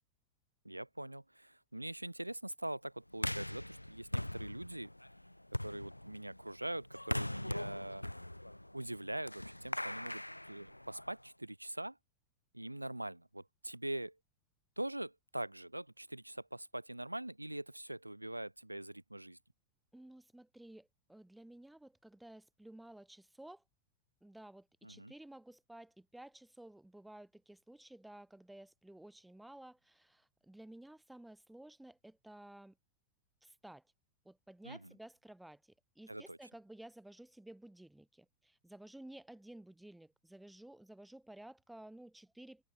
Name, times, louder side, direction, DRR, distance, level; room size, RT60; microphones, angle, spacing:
voice 1, 0.6-4.9 5.6-8.1 8.7-12.0 12.5-14.2 14.8-19.4 24.8-25.1 34.6-34.9 36.1-36.4, right 1 dB, 85° right, 3.8 m, -43 dB
sound 1, 3.1-11.3, left 1 dB, 85° left, 2.4 m, -41 dB
voice 2, 19.9-23.6 24.2-32.7 33.4-33.8 34.2-35.6 36.0-42.6, right 1 dB, 5° right, 2.7 m, -54 dB
open air
figure-of-eight pair, 90°, 0 cm